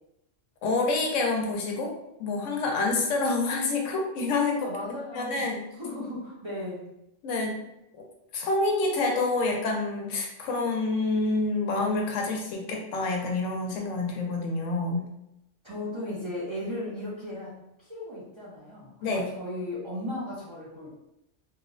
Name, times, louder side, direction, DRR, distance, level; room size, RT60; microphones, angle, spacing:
voice 1, 0.6-1.9 2.2-4.7 5.1-5.7 7.2-7.6 8.3-15.1 19.0-19.3, left 3 dB, 85° left, 1 dB, 0.9 m, -27 dB
voice 2, 4.6-5.5 5.8-6.9 15.6-21.0, left 1 dB, 35° right, -9 dB, 0.5 m, -36 dB
2.8 x 2.1 x 2.4 m, 0.85 s
omnidirectional pair, 1.3 m